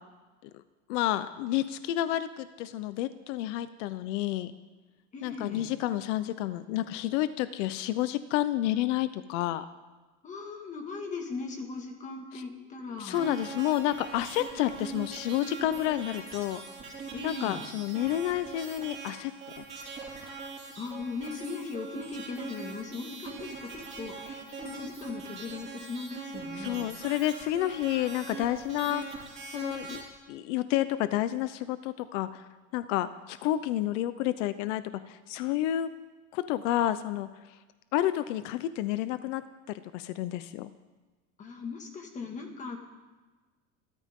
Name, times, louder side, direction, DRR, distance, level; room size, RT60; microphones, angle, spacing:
voice 1, 0.9-4.5 5.2-9.7 12.3-12.4 12.9-16.6 17.2-19.6 26.5-29.0 29.5-30.0 30.3-35.9 36.3-37.3 37.9-40.7, left 13 dB, 80° left, 13 dB, 0.8 m, -30 dB
voice 2, 5.1-5.7 10.2-13.3 17.1-17.6 20.8-26.9 41.4-42.8, left 4 dB, 20° left, 3 dB, 1.9 m, -39 dB
sound 1, 13.1-30.0, right 4 dB, 20° right, 4.1 m, -42 dB
28.0 x 13.5 x 3.7 m, 1.3 s
cardioid pair, 175°, 36 cm